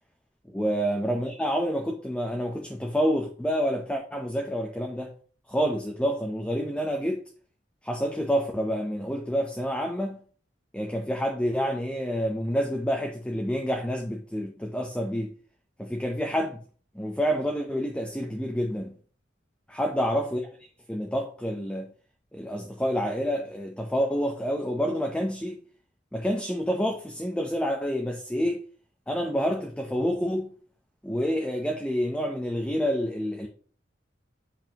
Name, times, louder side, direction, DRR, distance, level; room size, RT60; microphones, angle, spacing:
voice 1, 0.5-5.1 5.5-7.2 7.8-10.2 10.7-15.3 15.8-16.6 16.9-18.9 19.7-21.9 22.3-25.6 26.1-28.6 29.1-30.5 31.0-33.5, equal, 5° left, 0.7 m, -28 dB
7.5 x 5.5 x 2.9 m
head